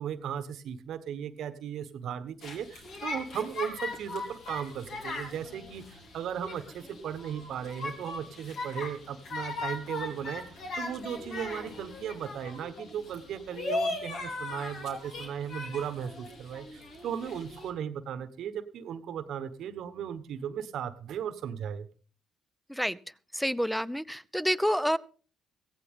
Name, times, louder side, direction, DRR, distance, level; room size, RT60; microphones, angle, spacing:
voice 1, 0.0-21.9, right 8 dB, 70° right, 13 dB, 1.1 m, -36 dB
sound 1, 2.4-17.7, left 2 dB, 70° left, 3.7 m, -39 dB
voice 2, 23.3-25.0, equal, ahead, 19 dB, 0.7 m, -28 dB
16.0 x 15.5 x 3.7 m, 0.40 s
supercardioid pair, 65°, 0 cm